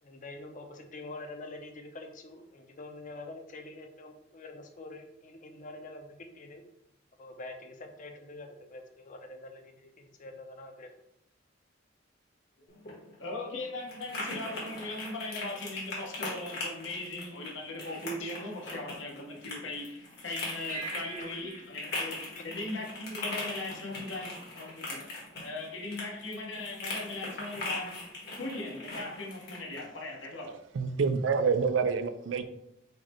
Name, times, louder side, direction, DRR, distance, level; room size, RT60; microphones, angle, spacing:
voice 1, 0.0-6.7 7.2-10.9 21.1-21.3 22.3-22.5 23.2-23.3, left 2 dB, 45° left, 0.6 m, -46 dB
sound 1, 12.7-29.8, left 2 dB, 60° left, 1.4 m, -40 dB
voice 2, 13.2-25.1 25.4-28.0 28.4-30.6, left 2 dB, 85° left, 1.1 m, -39 dB
sound 2, 20.7-23.4, right 5 dB, 50° right, 0.8 m, -45 dB
voice 3, 30.7-32.4, right 5 dB, 80° right, 0.4 m, -27 dB
4.9 x 2.1 x 4.3 m
head